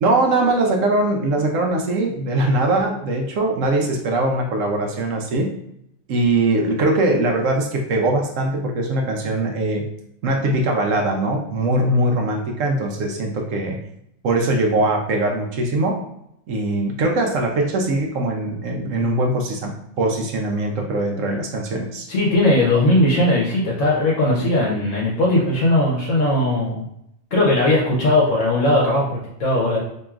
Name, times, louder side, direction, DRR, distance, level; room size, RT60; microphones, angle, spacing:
voice 1, 0.0-5.5 6.1-9.9 10.2-13.8 14.2-16.0 16.5-22.1, right 2 dB, 70° right, 2 dB, 1.0 m, -21 dB
voice 2, 22.1-26.8 27.3-29.8, left 1 dB, 65° left, -4 dB, 1.1 m, -18 dB
4.5 x 3.0 x 2.3 m, 0.77 s
omnidirectional pair, 1.5 m